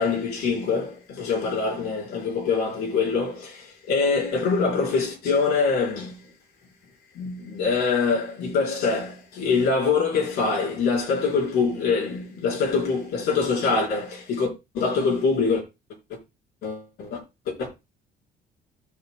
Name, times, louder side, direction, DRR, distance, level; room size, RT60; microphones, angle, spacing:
voice 1, 0.0-6.2 7.2-15.6 16.1-16.2 16.6-17.2 17.5-17.7, left 4 dB, 75° left, 4.1 m, -24 dB
14.0 x 6.4 x 2.2 m
cardioid pair, 110°, 17 cm